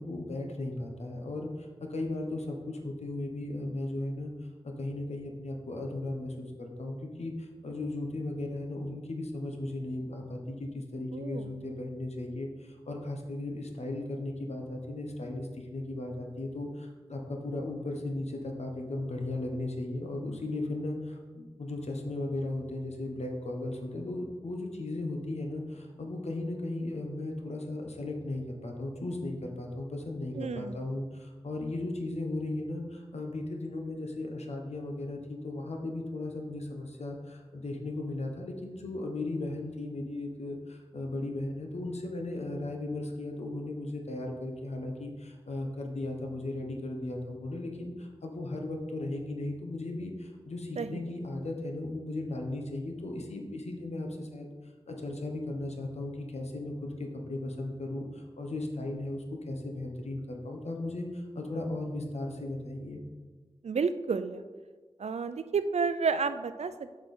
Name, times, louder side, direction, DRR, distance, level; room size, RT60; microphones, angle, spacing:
voice 1, 0.0-4.3 4.6-54.5 54.9-63.0, left 2 dB, 80° left, 2 dB, 1.2 m, -36 dB
voice 2, 11.1-11.5 30.4-30.7 50.8-50.9 63.6-64.4 65.0-67.0, right 5 dB, 85° right, 11 dB, 0.5 m, -31 dB
8.2 x 6.0 x 4.3 m, 1.4 s
wide cardioid pair, 65°, 11 cm